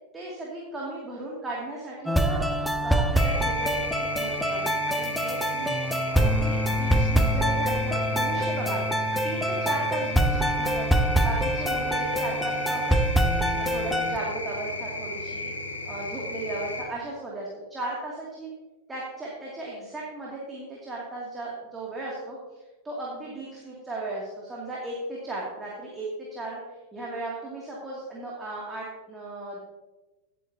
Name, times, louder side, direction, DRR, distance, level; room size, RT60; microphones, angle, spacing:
voice 1, 0.1-2.4 2.8-5.7 6.1-13.0 13.6-15.5 15.9-18.5 18.9-22.4 22.8-26.6 26.9-29.6, right 2 dB, 15° right, -4 dB, 2.5 m, -36 dB
sound 1, 2.1-14.2, right 1 dB, ahead, 0.7 m, -25 dB
sound 2, 3.2-16.8, left 2 dB, 75° left, 1.8 m, -35 dB
17.5 x 8.4 x 2.8 m, 1.1 s
figure-of-eight pair, 90°, 0 cm